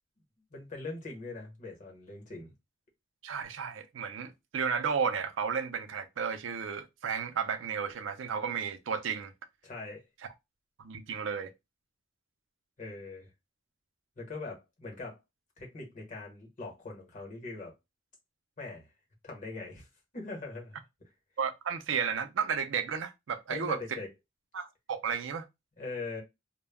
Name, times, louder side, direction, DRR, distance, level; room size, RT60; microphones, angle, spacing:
voice 1, 0.5-2.5 9.6-10.0 12.8-13.3 14.2-15.2 15.6-17.7 18.6-18.9 19.2-19.9 20.1-20.8 23.5-24.1 25.8-26.2, left 3 dB, 45° left, 1.0 m, -41 dB
voice 2, 3.2-9.3 10.8-11.5 21.4-24.0 24.5-25.4, right 6 dB, 90° right, 0.4 m, -33 dB
2.2 x 2.0 x 3.3 m
head